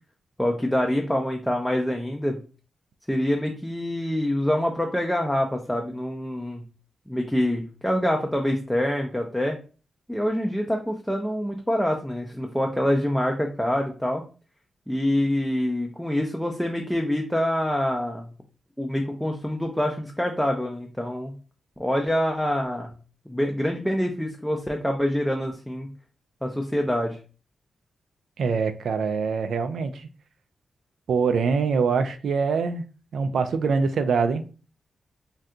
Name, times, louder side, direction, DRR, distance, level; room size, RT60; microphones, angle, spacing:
voice 1, 0.4-2.4 3.1-6.6 7.1-9.6 10.1-14.2 14.9-18.3 18.8-21.3 21.8-22.9 23.3-25.9 26.4-27.2, left 1 dB, ahead, 2 dB, 0.3 m, -25 dB
voice 2, 28.4-30.1 31.1-32.8 33.1-34.4, right 5 dB, 75° right, 9 dB, 0.3 m, -24 dB
2.7 x 2.2 x 3.6 m, 0.36 s
wide cardioid pair, 125°, 0 cm